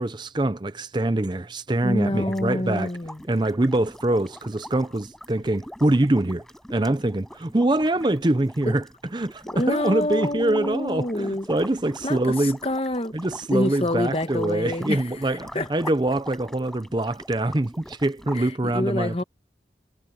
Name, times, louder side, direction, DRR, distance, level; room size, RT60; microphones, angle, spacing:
voice 1, 0.0-2.9 3.3-6.4 6.7-8.8 9.1-12.6 13.1-19.2, right 1 dB, 25° right, 0.6 m, -24 dB
voice 2, 1.8-3.2 8.7-8.8 9.5-11.5 12.0-13.1 13.5-15.7 18.3-19.2, left 1 dB, 35° left, 1.2 m, -27 dB
sound 1, 2.1-18.4, equal, 5° left, 5.7 m, -43 dB
head